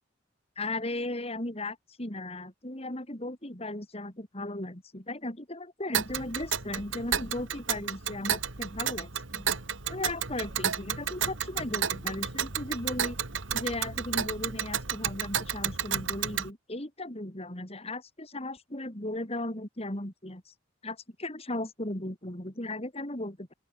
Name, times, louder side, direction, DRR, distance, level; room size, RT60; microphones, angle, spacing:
voice 1, 0.6-9.6 9.9-13.2 13.5-20.5 20.8-23.5, left 1 dB, 30° left, 4.0 m, -36 dB
Tick, 5.9-16.5, right 8 dB, 80° right, 2.4 m, -32 dB
open air
head